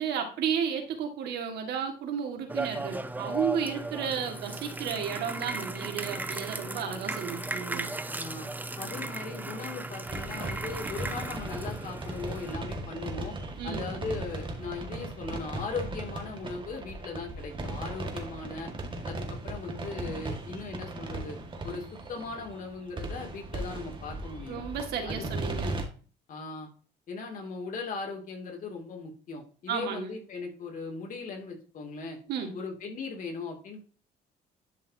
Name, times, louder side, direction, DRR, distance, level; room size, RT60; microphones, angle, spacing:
voice 1, 0.0-7.9 13.6-13.9 24.5-25.7 29.7-30.2 32.3-32.5, right 7 dB, 75° right, 4 dB, 2.1 m, -33 dB
sound 1, 2.5-12.6, right 2 dB, 10° right, 0.7 m, -36 dB
voice 2, 8.1-8.5 8.8-13.4 13.6-18.7 19.0-21.4 21.6-24.6 25.0-25.4 26.3-26.7 27.1-32.2 32.5-33.8, left 4 dB, 50° left, 2 dB, 2.8 m, -38 dB
sound 2, 10.1-25.8, right 2 dB, 30° right, 1.9 m, -37 dB
11.5 x 5.4 x 2.9 m, 0.39 s
cardioid pair, 110°, 17 cm